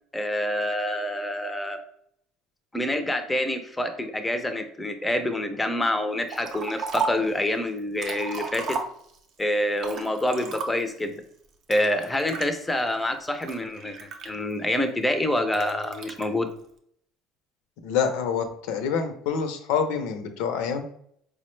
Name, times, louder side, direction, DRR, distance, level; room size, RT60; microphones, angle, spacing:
voice 1, 0.1-1.8 2.7-8.8 9.4-11.2 11.7-14.0 14.2-16.5, left 1 dB, 10° left, 7 dB, 0.4 m, -27 dB
Liquid, 6.3-7.3 7.8-9.3 9.8-11.0 11.7-12.5 13.1-14.7 15.5-16.3, right 5 dB, 45° right, 0.5 m, -34 dB
voice 2, 17.8-20.8, left 6 dB, 85° left, 7 dB, 0.5 m, -26 dB
4.6 x 2.0 x 3.1 m, 0.67 s
cardioid pair, 150°, 0 cm